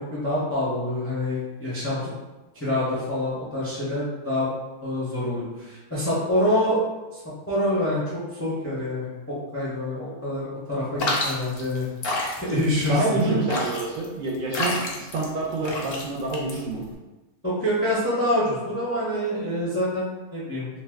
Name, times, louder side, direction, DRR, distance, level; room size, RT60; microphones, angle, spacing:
voice 1, 0.0-2.1 2.5-4.5 4.8-6.8 7.1-7.2 7.5-11.9 12.4-13.4 17.4-20.7, left 1 dB, 20° left, -9 dB, 0.4 m, -26 dB
sound 1, 11.0-16.9, left 2 dB, 60° left, 0.6 m, -29 dB
voice 2, 12.8-16.8, right 3 dB, 70° right, -2 dB, 0.9 m, -27 dB
2.6 x 2.1 x 3.3 m, 1.1 s
omnidirectional pair, 1.6 m